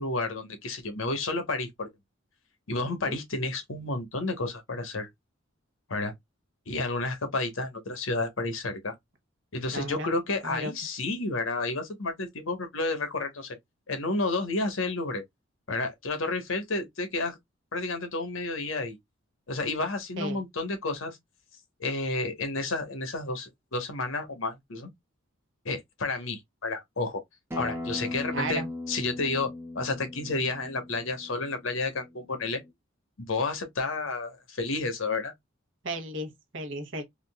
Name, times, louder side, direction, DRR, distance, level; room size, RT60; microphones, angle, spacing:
voice 1, 0.0-1.9 2.7-5.1 5.9-6.1 6.7-8.9 9.5-13.6 13.9-15.2 15.7-17.4 17.7-19.0 19.5-21.2 21.8-24.9 25.6-27.2 27.6-29.5 29.7-32.6 33.2-35.3, left 3 dB, 80° left, 1.0 m, -31 dB
voice 2, 2.8-3.2 9.7-10.1 10.4-10.7 20.2-20.4 28.3-28.7 35.8-37.0, right 2 dB, 65° right, 1.0 m, -34 dB
Acoustic guitar, 27.5-32.7, left 2 dB, 10° right, 0.7 m, -39 dB
3.7 x 2.6 x 2.2 m
head